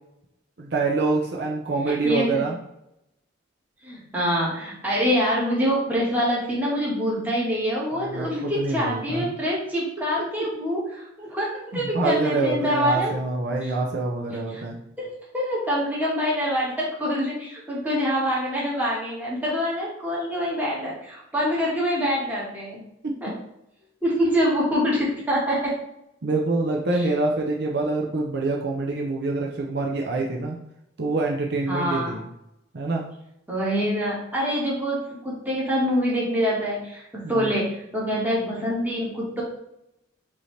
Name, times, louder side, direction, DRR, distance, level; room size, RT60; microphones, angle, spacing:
voice 1, 0.6-2.6 8.0-9.3 11.7-14.8 23.0-23.4 26.2-30.6 31.0-32.3 32.7-33.0 37.2-37.5, right 3 dB, 60° right, -1 dB, 0.6 m, -26 dB
voice 2, 1.9-2.5 3.8-13.2 13.6-13.7 14.5-14.6 15.0-22.8 23.2-23.3 24.0-25.7 31.7-32.2 33.5-39.4, equal, 10° right, -6 dB, 1.4 m, -25 dB
5.3 x 2.8 x 3.2 m, 0.81 s
head